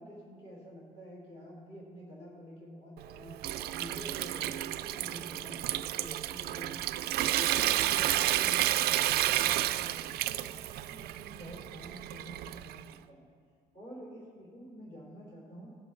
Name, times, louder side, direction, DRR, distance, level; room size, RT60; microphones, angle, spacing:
voice 1, 0.0-3.4 3.7-6.9 7.2-13.2 13.7-15.7, equal, 40° left, -5 dB, 3.0 m, -49 dB
Water tap faucet / Sink (filling or washing) / Trickle dribble, 3.0-12.9, right 14 dB, 70° right, 0.4 m, -31 dB
21.0 x 7.1 x 3.1 m, 2.1 s
cardioid pair, 110°, 17 cm